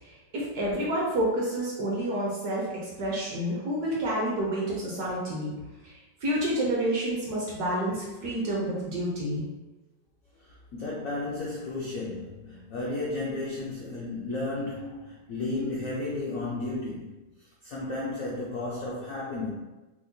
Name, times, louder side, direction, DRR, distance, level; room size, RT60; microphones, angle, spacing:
voice 1, 0.1-5.5 5.8-5.9 6.2-9.4, right 1 dB, 65° right, -4 dB, 1.0 m, -29 dB
voice 2, 10.4-17.2 17.6-19.5, left 2 dB, 80° left, -5 dB, 0.7 m, -33 dB
4.5 x 2.1 x 2.6 m, 1.1 s
omnidirectional pair, 2.1 m